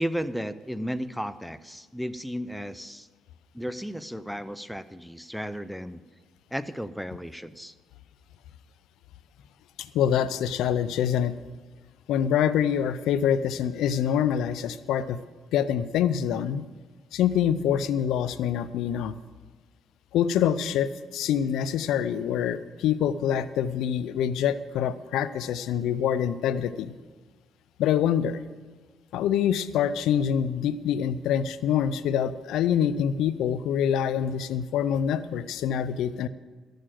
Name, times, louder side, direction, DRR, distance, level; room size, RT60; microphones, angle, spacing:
voice 1, 0.0-3.1 3.5-6.0 6.5-7.7, equal, ahead, 12 dB, 0.6 m, -34 dB
voice 2, 9.9-11.4 12.1-15.2 15.5-16.6 17.1-19.1 20.1-26.9 27.8-28.4 29.1-36.3, left 9 dB, 85° left, 14 dB, 0.5 m, -25 dB
14.0 x 6.6 x 7.7 m, 1.4 s
cardioid pair, 90°, 0 cm